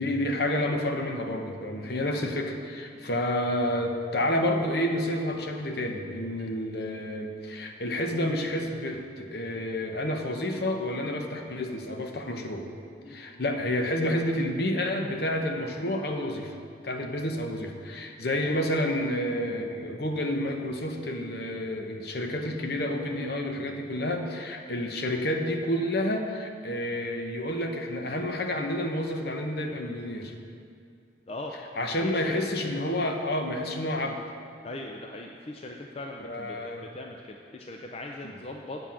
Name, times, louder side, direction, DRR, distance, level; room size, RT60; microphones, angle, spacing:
voice 1, 0.0-12.7 13.1-16.6 16.8-30.3 31.8-34.2 36.2-36.9 38.2-38.3, left 1 dB, 60° left, 3 dB, 0.9 m, -29 dB
voice 2, 1.7-2.0 2.9-3.1 6.4-6.5 13.0-13.4 16.9-17.3 31.3-31.5 32.0-32.6 34.6-38.8, left 2 dB, 35° left, 1 dB, 0.5 m, -40 dB
8.1 x 5.7 x 7.5 m, 2.4 s
head